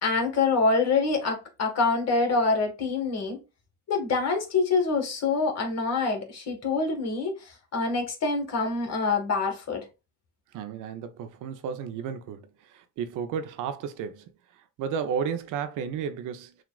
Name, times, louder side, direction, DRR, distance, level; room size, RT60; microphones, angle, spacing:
voice 1, 0.0-3.4 3.9-9.8, left 4 dB, 60° left, 1.6 m, -26 dB
voice 2, 10.5-14.3 14.8-16.5, right 7 dB, 90° right, 0.6 m, -33 dB
6.1 x 2.4 x 2.3 m
cardioid pair, 90°, 30 cm